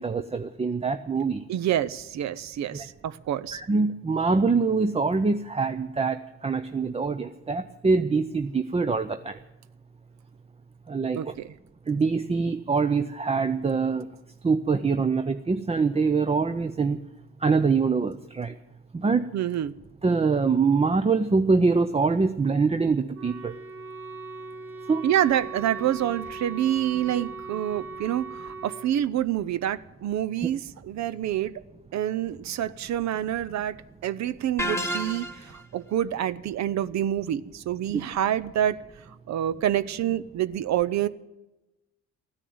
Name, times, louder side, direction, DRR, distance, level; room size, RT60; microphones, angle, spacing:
voice 1, 0.0-1.4 2.7-2.8 3.5-9.4 10.9-11.3 11.9-14.1 14.4-17.0 17.4-18.5 18.9-19.2 20.0-23.5 24.9-25.0 27.1-27.2 37.9-38.0, right 4 dB, 20° right, 9 dB, 0.6 m, -24 dB
voice 2, 1.5-3.6 11.2-11.5 19.3-19.8 25.0-31.6 31.9-38.8 39.1-41.1, right 11 dB, 65° right, 15 dB, 0.6 m, -27 dB
Wind instrument woodwind instrument, 23.1-28.9, right 4 dB, 45° right, 1.8 m, -39 dB
sound 1, 34.6-35.6, equal, 10° left, 1.2 m, -30 dB
14.5 x 9.8 x 9.4 m, 1.0 s
cardioid pair, 90°, 30 cm